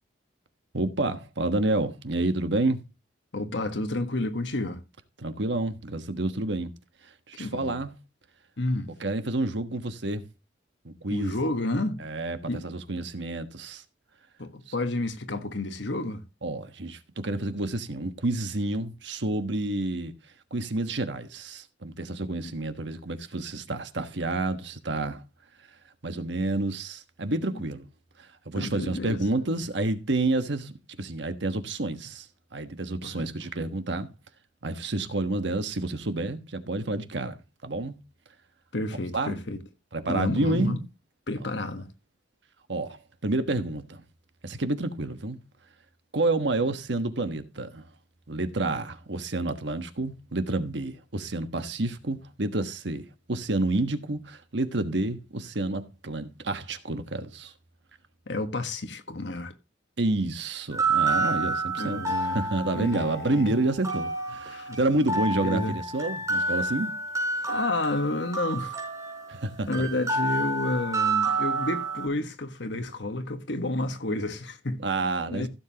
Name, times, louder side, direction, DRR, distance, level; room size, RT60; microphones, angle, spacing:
voice 1, 0.7-2.8 5.2-6.7 7.3-7.9 9.0-10.2 10.8-11.4 12.0-13.8 14.7-14.8 16.4-20.1 20.5-25.2 26.0-27.9 28.2-32.3 32.5-34.1 34.6-37.4 37.6-38.0 39.1-39.3 39.9-40.7 42.7-44.0 44.4-45.4 46.1-47.8 48.3-57.5 60.0-62.0 62.3-67.0 69.3-69.7 74.8-75.5, right 2 dB, 70° right, 1.3 m, -29 dB
voice 2, 3.3-4.8 7.4-7.8 8.6-8.9 11.1-12.0 12.5-12.6 14.4-16.2 27.5-27.6 28.5-29.2 33.0-33.3 38.7-39.6 40.1-40.8 41.3-41.9 58.3-59.5 61.8-62.4 62.7-63.5 64.5-64.8 65.4-65.7 67.5-68.8 69.7-74.8 75.3-75.5, left 2 dB, 70° left, 1.4 m, -30 dB
sound 1, 60.7-72.1, right 3 dB, 15° right, 5.2 m, -29 dB
15.5 x 7.4 x 2.9 m
head